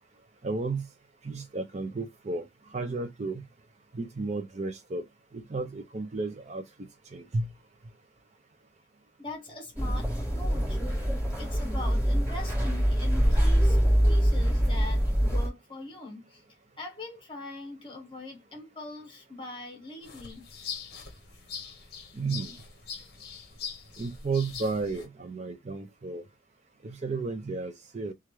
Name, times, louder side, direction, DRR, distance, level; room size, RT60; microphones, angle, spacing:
voice 1, 0.4-0.9 1.2-2.5 2.7-3.4 3.9-5.0 5.3-6.6 7.1-7.5 22.1-22.6 24.0-26.2 26.8-28.1, right 3 dB, 35° right, 0.4 m, -33 dB
voice 2, 9.2-10.8 11.4-13.8 14.0-16.4 16.8-20.5, left 2 dB, 25° left, 1.0 m, -42 dB
sound 1, 9.8-15.5, equal, 10° right, 1.8 m, -24 dB
sound 2, 20.0-25.1, left 6 dB, 55° left, 0.8 m, -42 dB
3.1 x 2.4 x 3.0 m
head